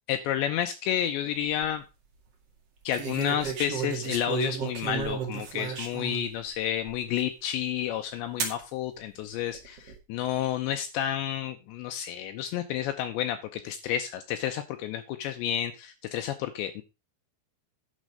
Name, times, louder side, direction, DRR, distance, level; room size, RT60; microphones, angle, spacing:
voice 1, 0.1-1.8 2.9-16.8, left 10 dB, 90° left, 7 dB, 2.5 m, -30 dB
sound 1, 1.2-1.7 2.9-6.3 6.9-7.0 8.4-8.6 9.5-10.0, right 7 dB, 50° right, 1.8 m, -33 dB
10.5 x 6.3 x 4.9 m, 0.28 s
omnidirectional pair, 6.0 m